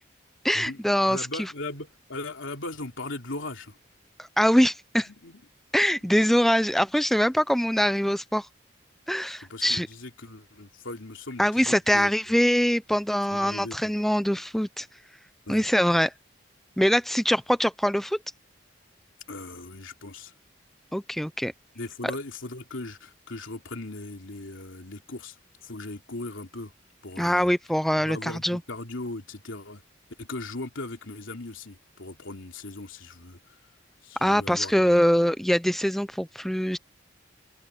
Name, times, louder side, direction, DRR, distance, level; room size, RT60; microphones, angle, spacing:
voice 1, 0.4-1.5 4.4-5.1 5.7-8.5 9.1-9.9 11.4-14.9 15.5-16.1 16.8-18.2 20.9-21.5 27.2-28.6 34.2-36.8, equal, ahead, 0.5 m, -23 dB
voice 2, 1.1-3.8 5.1-5.4 9.5-12.1 13.3-13.9 15.5-15.6 19.3-20.3 21.7-25.4 25.6-26.7 27.0-27.5 28.0-29.8 30.2-33.5 34.0-35.0, left 2 dB, 85° left, 3.0 m, -38 dB
open air
head